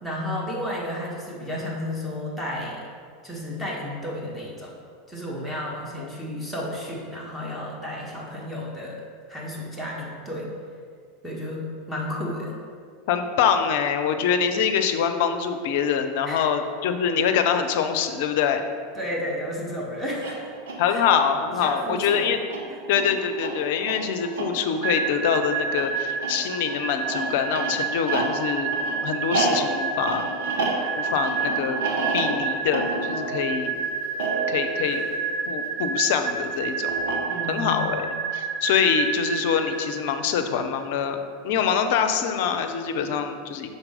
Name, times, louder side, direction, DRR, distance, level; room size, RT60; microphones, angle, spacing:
voice 1, 0.0-2.8 3.2-4.7 5.1-9.0 9.3-10.5 11.2-12.5 16.2-16.5 18.9-20.4 20.9-21.0 21.6-22.2 22.7-22.8 37.3-37.8, left 1 dB, 5° right, -5 dB, 1.4 m, -32 dB
voice 2, 13.1-18.6 20.8-22.4 22.9-28.8 29.0-30.3 31.0-31.8 32.1-33.8 34.5-35.0 35.5-37.0 37.5-41.2 41.4-43.7, left 7 dB, 60° left, 7 dB, 0.5 m, -24 dB
sound 1, 20.1-35.9 36.9-37.7, right 3 dB, 65° right, 1.0 m, -31 dB
sound 2, 24.8-40.4, right 5 dB, 35° right, 0.4 m, -30 dB
5.9 x 4.1 x 5.1 m, 2.1 s
figure-of-eight pair, 85°, 0 cm